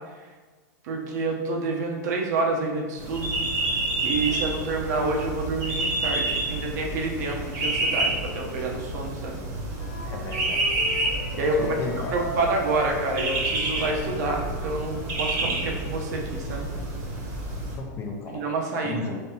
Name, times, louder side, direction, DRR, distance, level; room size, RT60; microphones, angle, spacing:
voice 1, 0.8-3.4 4.0-9.4 11.4-11.7 12.1-16.7 18.3-19.0, right 3 dB, 65° right, 1 dB, 0.9 m, -28 dB
sound 1, 3.0-17.8, right 2 dB, 35° right, 1.0 m, -29 dB
Wind instrument woodwind instrument, 9.8-15.1, left 1 dB, 70° left, 0.8 m, -37 dB
voice 2, 10.0-10.6 11.6-12.2 17.8-18.4 18.8-19.2, left 3 dB, 25° left, 2 dB, 0.6 m, -34 dB
5.3 x 3.4 x 2.9 m, 1.4 s
supercardioid pair, 150°, 10 cm